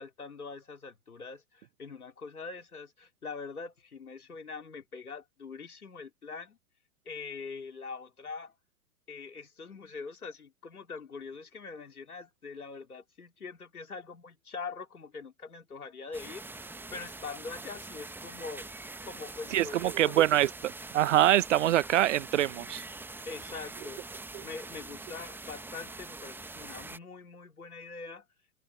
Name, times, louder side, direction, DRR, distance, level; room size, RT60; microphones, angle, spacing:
voice 1, 0.0-6.6 7.1-8.5 9.1-18.7 19.0-20.2 23.3-28.3, left 4 dB, 75° left, 3.8 m, -43 dB
sound 1, 16.1-27.0, right 3 dB, 5° right, 1.2 m, -44 dB
voice 2, 19.5-22.8, right 12 dB, 55° right, 1.0 m, -25 dB
figure-of-eight pair, 100°, 44 cm